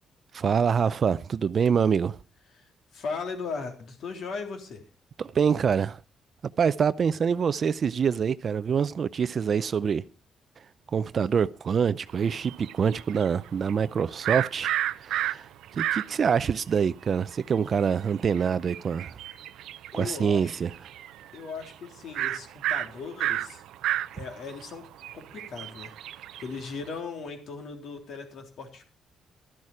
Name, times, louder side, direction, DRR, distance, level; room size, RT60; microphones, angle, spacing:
voice 1, 0.3-2.2 5.2-6.0 6.6-10.0 10.9-14.7 15.0-19.1 19.9-20.7, right 7 dB, 45° right, 0.5 m, -25 dB
voice 2, 2.9-4.8 19.9-20.5 21.3-23.6 24.1-24.9 25.1-25.9 26.4-28.8, left 4 dB, 65° left, 3.4 m, -37 dB
sound 1, 12.1-16.3 16.8-16.9 17.0-20.2 20.5-21.4 21.6-21.7 22.1-26.9, right 13 dB, 90° right, 0.6 m, -32 dB
13.0 x 11.0 x 4.8 m
cardioid pair, 120°, 0 cm